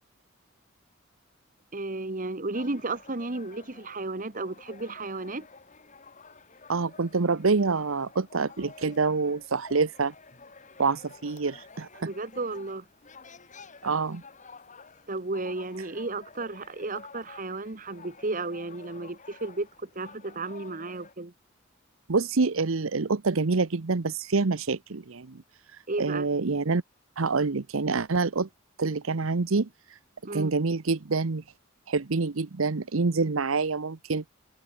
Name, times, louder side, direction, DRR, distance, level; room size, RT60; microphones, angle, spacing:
voice 1, 1.7-5.5 12.0-12.8 15.1-21.3 25.9-26.3 30.2-30.5, right 2 dB, 40° right, 1.3 m, -33 dB
sound 1, 2.5-21.1, left 4 dB, 35° left, 2.5 m, -51 dB
voice 2, 6.7-10.1 10.8-12.1 13.8-14.2 22.1-25.4 26.0-26.8 27.2-28.5 28.8-29.7 30.3-31.4 31.9-34.2, right 4 dB, 75° right, 0.9 m, -26 dB
head